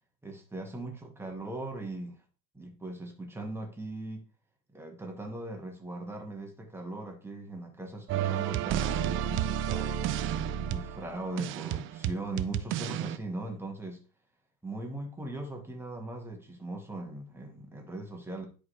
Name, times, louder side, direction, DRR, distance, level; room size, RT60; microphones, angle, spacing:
voice 1, 0.2-2.2 2.5-4.2 4.7-10.2 10.7-14.0 14.6-18.5, right 2 dB, 5° right, 1.8 m, -39 dB
sound 1, 8.1-13.2, right 10 dB, 30° right, 0.5 m, -31 dB
10.5 x 5.0 x 3.3 m
hypercardioid pair, 105°, 42 cm